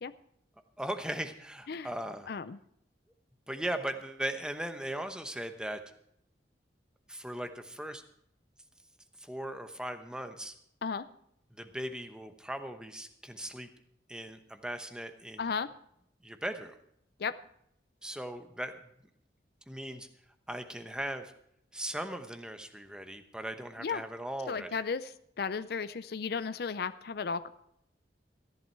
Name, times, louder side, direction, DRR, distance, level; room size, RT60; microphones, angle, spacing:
voice 1, 0.8-2.3 3.5-5.8 7.1-8.0 9.2-10.6 11.5-13.7 14.1-15.5 16.2-16.8 18.0-18.9 19.7-20.1 20.5-21.3 21.7-24.8, right 1 dB, 5° right, 7 dB, 0.9 m, -38 dB
voice 2, 2.3-2.6 10.8-11.1 15.4-15.7 17.2-17.4 23.8-24.0 24.5-25.1 25.4-27.5, left 5 dB, 60° left, 14 dB, 0.5 m, -34 dB
14.0 x 11.0 x 4.5 m, 0.73 s
head